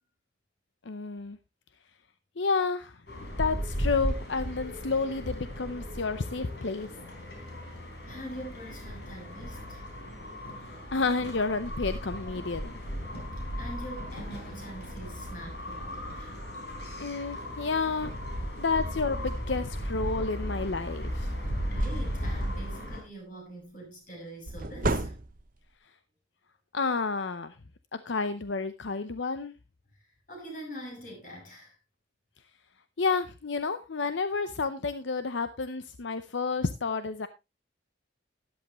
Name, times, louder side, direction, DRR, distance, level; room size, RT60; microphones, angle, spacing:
voice 1, 0.8-1.4 2.4-6.9 10.9-12.7 17.0-18.1 18.6-21.3 26.7-27.6 27.9-29.5 33.0-37.3, left 4 dB, 75° left, 0.7 m, -30 dB
sound 1, 3.1-23.0, equal, 60° left, 4.0 m, -36 dB
voice 2, 8.1-9.8 13.6-16.4 21.6-25.1 29.9-30.0 30.3-31.8, right 1 dB, 45° left, 6.1 m, -44 dB
sound 2, 20.5-20.8 21.3-21.4 21.7-22.8 24.5-25.7, right 2 dB, 45° right, 0.9 m, -33 dB
13.0 x 11.5 x 3.0 m
head